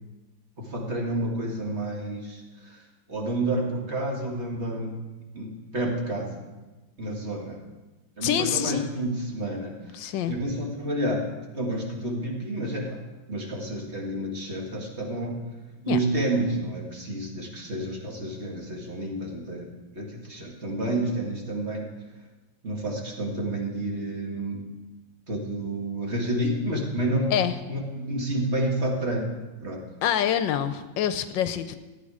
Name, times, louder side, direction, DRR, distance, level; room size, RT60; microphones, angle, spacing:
voice 1, 0.6-2.8 3.1-4.9 5.3-6.4 7.0-7.6 8.2-10.0 10.3-11.3 11.5-13.0 13.3-15.4 15.8-21.9 22.6-24.6 25.3-27.3 27.7-29.3 29.6-29.8, right 1 dB, 35° right, -1 dB, 2.1 m, -29 dB
voice 2, 8.2-8.9 9.9-10.3 15.9-16.0 27.3-27.6 30.0-31.8, left 10 dB, 80° left, 11 dB, 1.3 m, -26 dB
14.5 x 9.4 x 4.9 m, 1.2 s
omnidirectional pair, 2.1 m